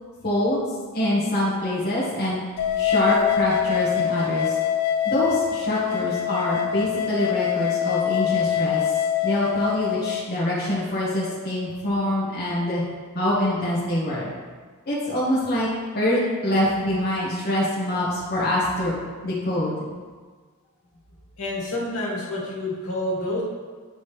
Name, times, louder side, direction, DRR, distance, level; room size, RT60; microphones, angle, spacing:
voice 1, 0.2-0.7 0.9-2.4 2.8-4.5 5.0-9.0 9.2-12.8 13.1-14.3 14.9-15.7 15.9-18.9 19.2-19.7, left 1 dB, 45° left, -8 dB, 1.5 m, -25 dB
sound 1, 2.6-10.2, left 9 dB, 90° left, 0.5 m, -24 dB
voice 2, 21.4-23.4, left 1 dB, 70° left, -5 dB, 2.1 m, -28 dB
9.3 x 5.3 x 3.4 m, 1.5 s
head